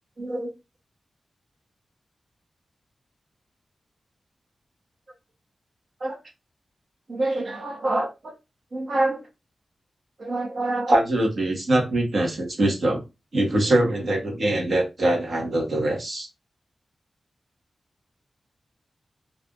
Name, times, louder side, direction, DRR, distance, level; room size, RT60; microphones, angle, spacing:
voice 1, 0.2-0.5 6.0-6.2 7.1-8.3 8.7-9.2 10.2-13.0 13.3-16.3, right 1 dB, 65° right, 1.1 m, -24 dB
2.5 x 2.4 x 3.5 m
wide cardioid pair, 85°, 0 cm